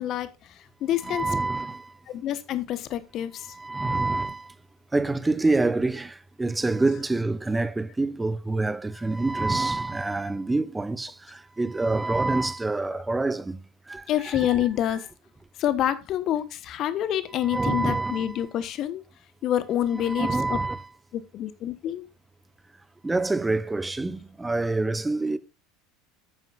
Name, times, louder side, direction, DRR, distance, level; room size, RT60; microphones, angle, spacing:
voice 1, 0.0-1.3 2.1-3.5 4.1-4.2 12.9-13.0 14.1-15.0 15.6-19.0 19.4-20.6 21.1-22.1, left 11 dB, 45° left, 1.1 m, -27 dB
voice 2, 1.0-1.9 3.4-4.5 4.9-14.6 17.4-18.4 19.9-20.9 23.0-25.4, right 2 dB, 10° right, 0.9 m, -27 dB
11.0 x 9.3 x 2.4 m
figure-of-eight pair, 70°, 0 cm